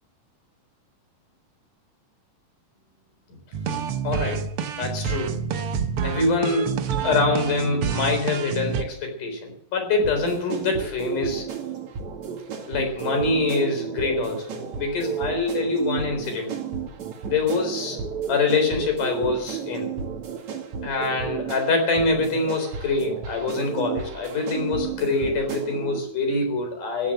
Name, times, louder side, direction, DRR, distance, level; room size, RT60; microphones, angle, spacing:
sound 1, 3.5-8.8, right 7 dB, 70° right, 1.3 m, -28 dB
voice 1, 4.0-4.5 4.8-5.4 6.0-11.5 12.7-16.5 17.3-18.0 18.3-19.9 20.8-27.1, left 3 dB, 65° left, 5 dB, 5.5 m, -25 dB
sound 2, 10.0-26.0, right 6 dB, 55° right, 3.2 m, -33 dB
15.0 x 11.0 x 7.7 m, 0.71 s
omnidirectional pair, 4.0 m